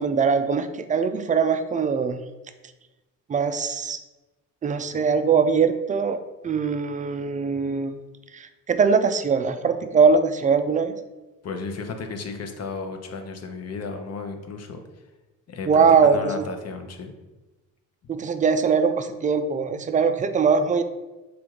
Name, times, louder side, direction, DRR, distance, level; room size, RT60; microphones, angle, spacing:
voice 1, 0.0-2.2 3.3-4.0 4.6-6.2 6.4-8.0 8.3-10.9 15.7-16.3 18.1-20.8, right 5 dB, 20° right, 9 dB, 0.3 m, -21 dB
voice 2, 11.4-14.8 15.5-17.1, left 4 dB, 40° left, 5 dB, 0.7 m, -34 dB
3.5 x 2.6 x 4.5 m, 1.1 s
supercardioid pair, 60°, 37 cm